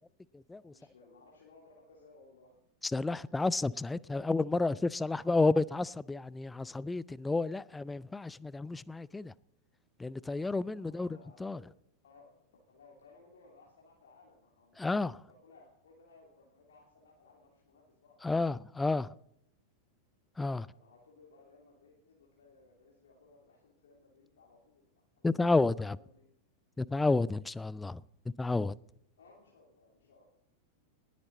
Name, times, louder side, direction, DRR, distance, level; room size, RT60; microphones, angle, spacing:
voice 1, 0.7-2.6 10.7-11.8 12.0-18.4 20.4-24.8 25.2-25.3 25.6-26.3 29.2-30.2, left 3 dB, 60° left, 3.0 m, -61 dB
voice 2, 2.9-9.3 10.0-11.1 11.4-11.6 14.8-15.1 18.2-19.1 20.4-20.7 25.2-26.0 26.8-28.0 28.4-28.7, left 3 dB, 10° left, 0.4 m, -31 dB
19.5 x 9.5 x 4.1 m
figure-of-eight pair, 90°, 0 cm